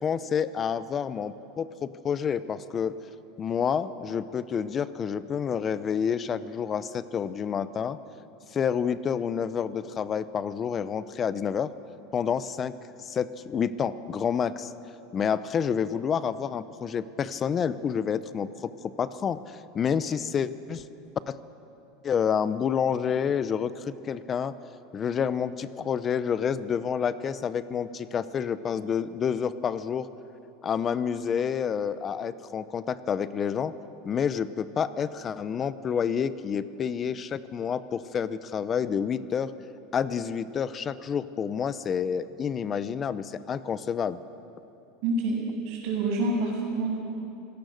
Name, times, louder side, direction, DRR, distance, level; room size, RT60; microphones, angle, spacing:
voice 1, 0.0-3.0 3.4-8.0 8.5-11.7 12.1-12.7 13.0-14.7 15.1-19.4 19.7-20.8 21.3-21.4 22.0-24.5 24.9-30.1 30.6-33.7 34.0-39.5 39.9-44.2, left 7 dB, 25° left, 14 dB, 0.6 m, -29 dB
voice 2, 45.0-46.9, right 2 dB, 55° right, -8 dB, 6.2 m, -27 dB
26.0 x 17.0 x 6.5 m, 2.9 s
supercardioid pair, 155°, 0 cm